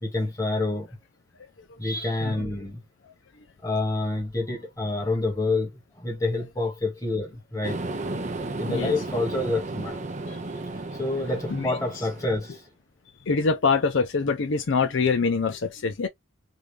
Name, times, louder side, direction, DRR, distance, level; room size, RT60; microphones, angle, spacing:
voice 1, 0.0-1.0 1.8-2.8 3.6-7.8 8.6-10.0 11.0-12.6, left 2 dB, 15° left, 1.6 m, -28 dB
sound 1, 7.6-12.6, right 2 dB, 35° right, 0.5 m, -34 dB
voice 2, 11.5-12.1 13.3-16.1, left 4 dB, 65° left, 0.5 m, -25 dB
3.7 x 2.4 x 3.3 m
head